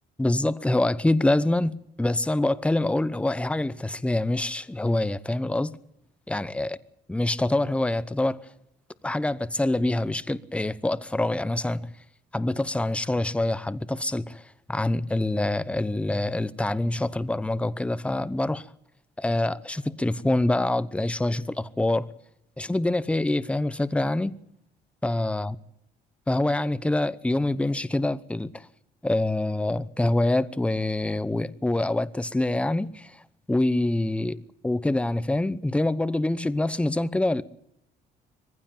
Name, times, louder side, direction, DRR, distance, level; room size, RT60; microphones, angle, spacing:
voice 1, 0.2-5.8 6.3-6.8 7.1-8.5 9.0-11.9 12.3-18.7 19.2-22.1 22.6-24.4 25.0-25.5 26.3-28.7 29.0-33.2 33.5-37.4, left 2 dB, 5° left, 0.9 m, -25 dB
21.5 x 15.5 x 8.9 m
cardioid pair, 110°, 17 cm